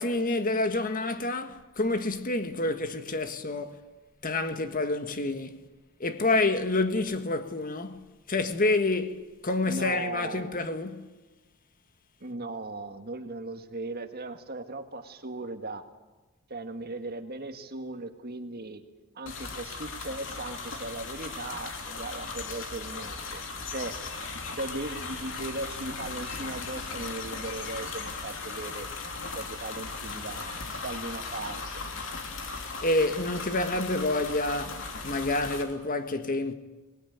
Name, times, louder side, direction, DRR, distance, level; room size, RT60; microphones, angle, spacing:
voice 1, 0.0-3.8 4.2-5.7 6.0-11.1 32.8-36.5, left 2 dB, 40° left, 1.5 m, -28 dB
voice 2, 9.7-10.6 12.2-15.8 16.5-18.8 19.2-23.4 23.7-23.9 24.5-28.9 29.3-31.8, right 2 dB, 45° right, 1.7 m, -38 dB
sound 1, 19.3-35.6, left 4 dB, 60° left, 3.2 m, -37 dB
24.0 x 20.0 x 9.4 m
head